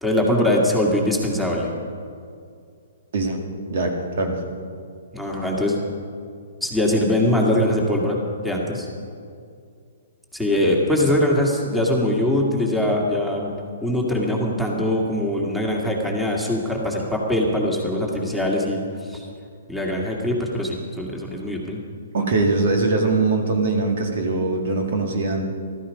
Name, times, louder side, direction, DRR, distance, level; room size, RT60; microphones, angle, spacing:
voice 1, 0.0-1.7 5.1-5.8 6.6-8.2 8.4-8.9 10.3-13.5 13.8-18.8 19.1-19.2 19.7-21.8, left 1 dB, ahead, -2 dB, 2.2 m, -22 dB
voice 2, 3.7-4.4 22.1-25.5, right 3 dB, 60° right, 2 dB, 2.1 m, -22 dB
14.5 x 13.5 x 5.3 m, 2.3 s
hypercardioid pair, 125°, 0 cm